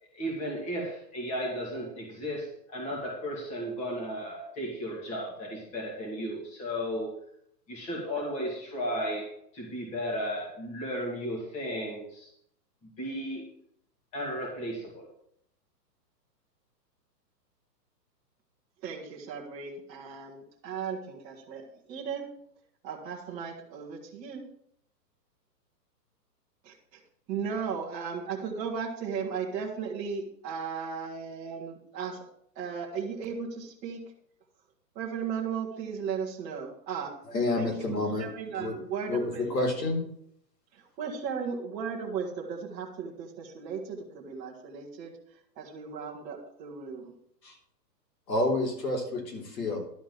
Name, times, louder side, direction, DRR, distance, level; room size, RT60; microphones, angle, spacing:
voice 1, 0.1-7.2 7.7-12.3 12.8-13.4 14.1-15.1, equal, 15° left, -2 dB, 2.0 m, -34 dB
voice 2, 18.8-22.2 22.8-24.5 27.3-32.3 32.5-34.0 34.9-37.1 37.5-39.7 40.7-45.1 45.6-47.1, right 6 dB, 15° right, -4 dB, 1.2 m, -36 dB
voice 3, 37.3-38.3 38.5-38.8 39.1-40.0 47.4-47.6 48.3-49.8, left 2 dB, 75° left, 0 dB, 3.8 m, -29 dB
11.5 x 4.6 x 7.5 m, 0.68 s
hypercardioid pair, 165°, 50 cm